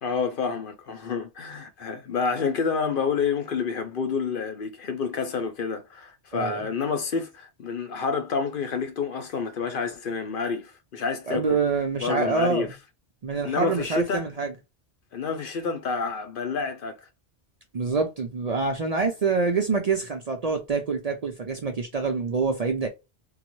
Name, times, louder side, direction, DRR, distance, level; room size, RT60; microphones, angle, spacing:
voice 1, 0.0-11.6 12.0-12.7 13.4-14.3 15.1-17.0, left 5 dB, 60° left, 0.7 m, -28 dB
voice 2, 11.3-12.7 13.2-14.5 17.7-22.9, right 4 dB, 50° right, 0.5 m, -26 dB
3.8 x 2.1 x 3.0 m
omnidirectional pair, 1.1 m